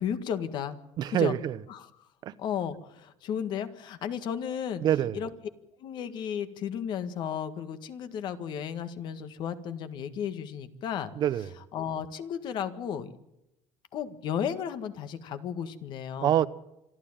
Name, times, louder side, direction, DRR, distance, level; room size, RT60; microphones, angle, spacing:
voice 1, 0.0-0.8 1.1-1.3 1.7-1.9 2.4-4.8 5.1-5.3 5.8-11.1 11.7-13.1 13.9-16.5, left 8 dB, 55° left, 1.7 m, -34 dB
voice 2, 1.0-1.6 2.2-2.3 4.8-5.2 11.2-11.5 16.2-16.5, right 11 dB, 50° right, 0.8 m, -25 dB
26.5 x 12.0 x 8.9 m
cardioid pair, 130°, 9 cm